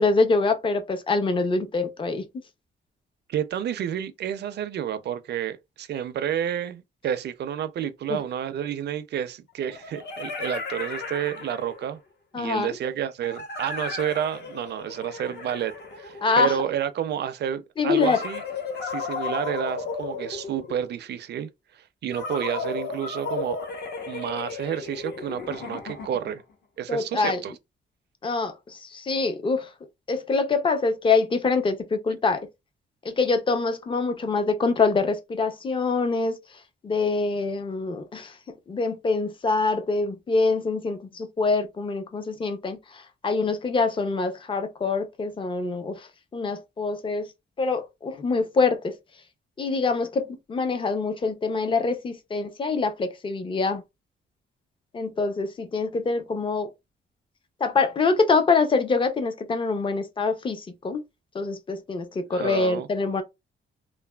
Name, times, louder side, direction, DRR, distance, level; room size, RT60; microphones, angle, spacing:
voice 1, 0.0-2.3 8.1-8.2 12.3-12.8 16.2-16.5 17.8-18.2 26.9-27.4 28.2-29.7 30.1-32.5 33.0-36.4 36.8-38.3 38.7-42.8 43.2-46.0 46.3-47.3 47.6-48.9 49.6-53.8 54.9-56.7 57.6-61.0 61.3-63.2, left 4 dB, 25° left, 0.5 m, -25 dB
voice 2, 3.3-12.0 12.3-18.4 18.8-21.5 21.7-23.6 24.1-26.4 26.8-27.5 62.3-62.9, right 9 dB, 55° right, 0.4 m, -30 dB
sound 1, 8.1-8.2 9.6-12.0 13.2-16.7 17.9-21.0 22.1-26.4, left 4 dB, 55° left, 0.9 m, -34 dB
3.2 x 2.2 x 2.2 m
wide cardioid pair, 140°, 20 cm